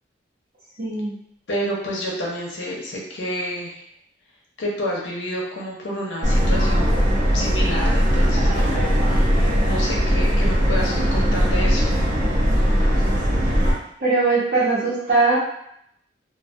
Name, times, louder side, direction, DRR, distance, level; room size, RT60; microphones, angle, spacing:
voice 1, 0.8-1.2 12.4-12.5 13.6-13.7 14.0-15.4, right 3 dB, 75° right, -12 dB, 0.8 m, -20 dB
voice 2, 1.5-3.8 4.6-7.0 7.3-8.8 9.0-11.9, equal, 75° left, -3 dB, 0.6 m, -29 dB
Subway metro underground, 6.2-13.7, equal, 45° right, 0.5 m, -19 dB
2.3 x 2.2 x 2.5 m, 0.72 s
head